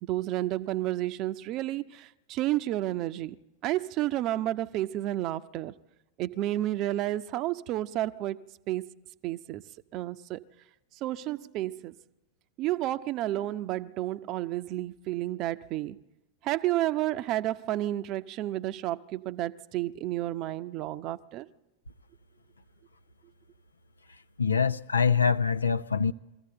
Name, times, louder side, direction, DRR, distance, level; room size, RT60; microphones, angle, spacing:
voice 1, 0.0-3.3 3.6-5.7 6.2-8.4 8.7-8.9 9.2-9.6 9.9-10.4 11.0-11.9 12.6-16.0 16.4-21.5, right 15 dB, 40° right, 0.7 m, -31 dB
voice 2, 24.4-26.1, left 6 dB, 75° left, 0.6 m, -24 dB
23.0 x 15.0 x 7.8 m
figure-of-eight pair, 90°, 0 cm